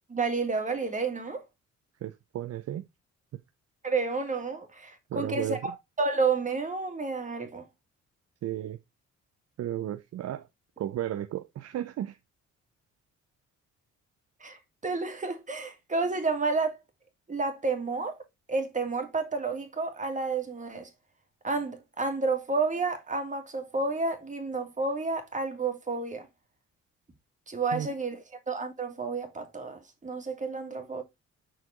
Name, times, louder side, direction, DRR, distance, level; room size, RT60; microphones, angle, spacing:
voice 1, 0.1-1.4 3.8-7.6 14.4-16.8 17.3-18.2 18.5-20.9 21.4-26.3 27.5-31.0, right 3 dB, 25° right, 2.0 m, -30 dB
voice 2, 2.0-2.8 5.1-5.7 8.4-8.8 9.6-10.5 10.8-12.2 27.7-27.9, right 12 dB, 55° right, 0.6 m, -34 dB
5.9 x 4.7 x 3.7 m
cardioid pair, 90°, 30 cm